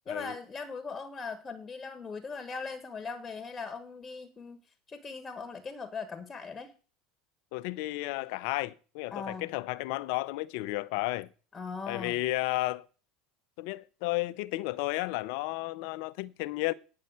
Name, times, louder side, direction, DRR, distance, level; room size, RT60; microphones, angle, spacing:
voice 1, 0.1-4.6 4.9-6.7 9.1-9.5 11.5-12.2, left 4 dB, 20° left, 1.4 m, -39 dB
voice 2, 7.5-11.3 11.9-12.9 13.6-16.7, left 19 dB, 65° left, 0.6 m, -33 dB
9.5 x 5.7 x 8.0 m
hypercardioid pair, 90°, 0 cm